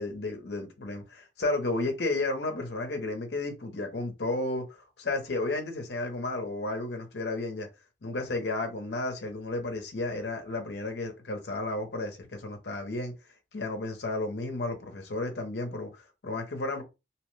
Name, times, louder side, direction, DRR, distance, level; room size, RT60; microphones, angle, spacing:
voice 1, 0.0-7.7 8.0-13.1 13.5-16.8, left 2 dB, 60° left, 0.7 m, -32 dB
2.8 x 2.1 x 3.1 m
head